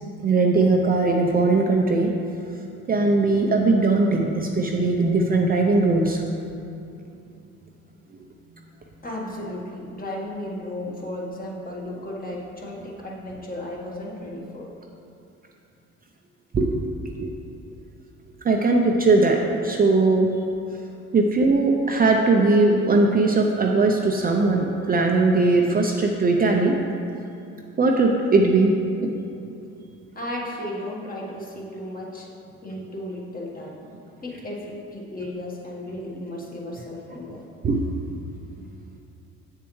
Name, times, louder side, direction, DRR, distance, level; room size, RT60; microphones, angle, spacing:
voice 1, 0.2-2.1 2.5-6.2 16.5-16.8 17.2-17.3 18.4-20.3 21.1-26.8 27.8-28.7 29.0-29.1 37.6-38.1, right 3 dB, 30° right, 1 dB, 0.5 m, -20 dB
voice 2, 9.0-14.7 30.1-32.3 32.6-33.7 34.2-37.4, left 1 dB, 25° left, -2 dB, 1.4 m, -34 dB
7.4 x 7.0 x 3.1 m, 2.6 s
cardioid pair, 95°, 32 cm